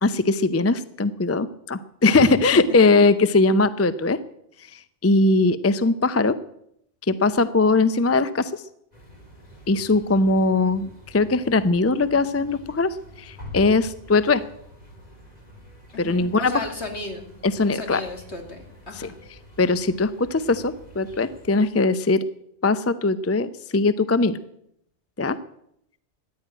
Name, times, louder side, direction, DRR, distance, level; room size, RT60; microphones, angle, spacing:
voice 1, 0.0-4.2 4.7-6.4 7.1-8.6 9.7-14.4 16.0-16.5 17.6-18.0 19.0-19.1 19.6-22.2 22.6-24.4 25.2-25.4, left 3 dB, 20° left, 14 dB, 0.4 m, -20 dB
voice 2, 2.1-3.1 15.9-17.3 17.6-19.1, left 3 dB, 65° left, 4 dB, 2.8 m, -34 dB
sound 1, 8.9-21.6, left 2 dB, 35° left, 3.8 m, -46 dB
14.5 x 10.5 x 9.1 m, 0.74 s
omnidirectional pair, 1.2 m